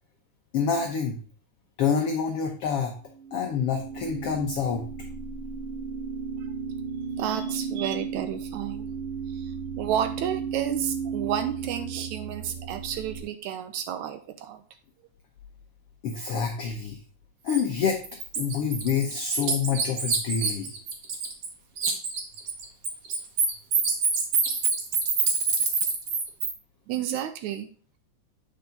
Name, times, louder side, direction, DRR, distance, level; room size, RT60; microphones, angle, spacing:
voice 1, 0.5-1.2 1.8-2.9 3.3-4.9 7.2-7.5 16.0-17.0 17.4-18.0 18.4-20.7, left 6 dB, 85° left, 3 dB, 1.3 m, -27 dB
sound 1, 3.1-13.2, right 6 dB, 30° right, 1.4 m, -34 dB
voice 2, 7.2-8.9 9.3-14.6 26.9-27.7, right 10 dB, 80° right, 8 dB, 1.8 m, -31 dB
Bird, 17.5-17.6 18.0-21.5 21.8-26.5, right 5 dB, 60° right, 1.8 m, -26 dB
8.1 x 4.7 x 3.8 m, 0.41 s
omnidirectional pair, 3.6 m